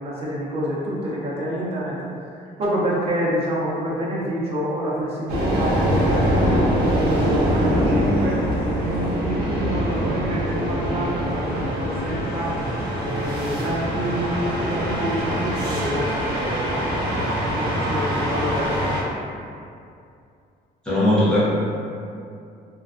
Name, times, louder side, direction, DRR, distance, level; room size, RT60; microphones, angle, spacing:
voice 1, 0.0-8.4 8.8-12.6 13.0-19.1, equal, 35° right, -6 dB, 0.5 m, -28 dB
sound 1, 5.3-19.0, equal, 85° right, 0.5 m, -23 dB
voice 2, 20.8-21.4, left 1 dB, 5° left, -11 dB, 0.6 m, -18 dB
2.4 x 2.2 x 2.4 m, 2.5 s
cardioid pair, 165°, 17 cm